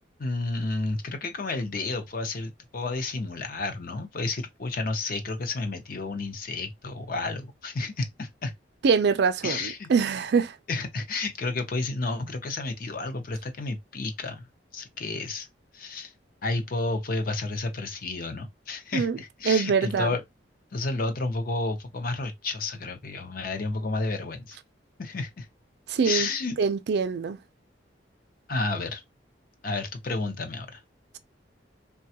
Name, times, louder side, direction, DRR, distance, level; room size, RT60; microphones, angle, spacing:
voice 1, 0.2-8.5 9.4-9.9 10.7-14.5 14.7-15.5 15.7-16.1 16.4-20.2 20.7-24.6 25.0-25.5 26.0-26.5 28.5-29.0 29.6-30.8, left 3 dB, 50° left, 0.6 m, -31 dB
voice 2, 8.8-10.6 18.9-19.2 19.5-20.2 25.9-26.3 26.6-27.4, right 5 dB, 60° right, 0.4 m, -24 dB
3.3 x 2.2 x 2.7 m
head